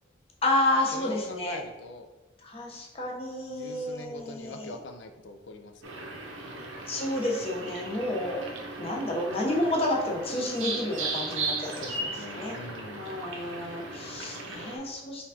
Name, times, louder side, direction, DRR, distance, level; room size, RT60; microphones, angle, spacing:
voice 1, 0.4-1.6 2.4-4.8 6.9-8.5 8.8-11.8 12.4-12.6 13.0-15.3, left 1 dB, 30° left, -2 dB, 0.8 m, -30 dB
voice 2, 0.9-2.1 3.5-6.2 6.4-6.7 11.7-13.1, left 2 dB, 65° left, 6 dB, 0.5 m, -43 dB
sound 1, 5.8-14.8, right 3 dB, 90° right, 0.7 m, -37 dB
4.5 x 3.6 x 2.7 m, 1.2 s
head